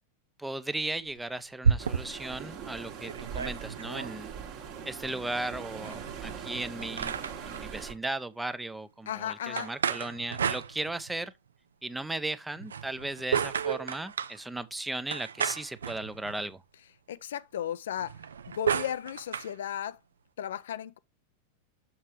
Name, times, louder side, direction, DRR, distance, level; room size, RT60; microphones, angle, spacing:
voice 1, 0.4-4.3 4.9-11.3 11.8-16.6, right 2 dB, 5° right, 0.5 m, -36 dB
sound 1, 0.8-2.3 2.8-2.9 3.0-4.1 5.8-7.6 9.6-11.2 12.6-14.4 15.1-16.5 18.0-19.5, right 6 dB, 70° right, 0.4 m, -32 dB
sound 2, 1.8-7.9, right 7 dB, 45° right, 1.5 m, -41 dB
voice 2, 9.1-9.7 17.1-18.2 18.5-20.0 20.4-21.0, left 10 dB, 60° left, 0.3 m, -35 dB
7.0 x 6.4 x 3.0 m
figure-of-eight pair, 90°, 0 cm